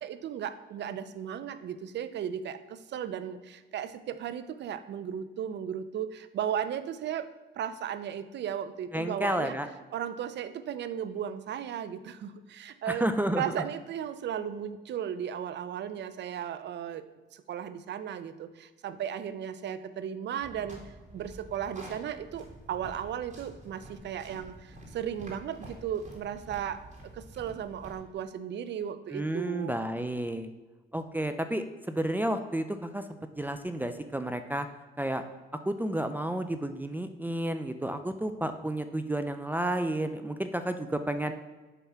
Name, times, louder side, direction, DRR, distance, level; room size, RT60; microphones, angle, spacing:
voice 1, 0.0-7.3 7.6-9.6 9.9-13.1 13.4-17.0 17.3-20.8 21.1-29.8, right 9 dB, 60° right, 12 dB, 0.5 m, -35 dB
voice 2, 8.9-9.7 12.9-13.4 29.1-30.5 30.9-33.0 33.4-34.7 35.0-35.2 35.7-41.3, right 1 dB, 10° right, 8 dB, 0.4 m, -31 dB
sound 1, 20.4-28.0, right 1 dB, 40° right, 2.2 m, -49 dB
7.3 x 3.5 x 5.7 m, 1.2 s
cardioid pair, 90°, 20 cm